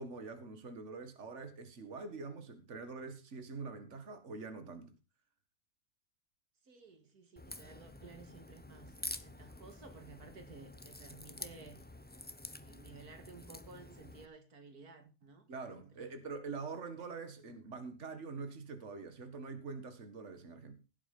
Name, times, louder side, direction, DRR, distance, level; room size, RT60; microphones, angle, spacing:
voice 1, 0.0-4.9 15.5-20.7, right 4 dB, 50° right, 2.1 m, -45 dB
voice 2, 6.6-11.9 12.6-15.5 15.8-16.3 17.0-17.6, right 3 dB, 90° right, 2.6 m, -55 dB
Crack, 7.4-14.3, left 1 dB, 10° left, 0.5 m, -48 dB
16.5 x 8.1 x 5.3 m
omnidirectional pair, 1.6 m